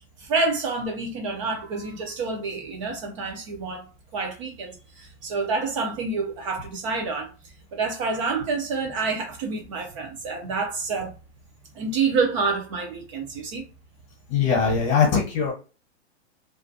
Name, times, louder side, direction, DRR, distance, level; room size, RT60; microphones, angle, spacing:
voice 1, 0.2-3.9 4.1-7.3 7.7-11.2 11.7-13.7, right 4 dB, 30° right, 0.4 m, -28 dB
voice 2, 14.3-15.5, left 6 dB, 40° left, 0.9 m, -21 dB
2.4 x 2.1 x 2.6 m
supercardioid pair, 160°, 33 cm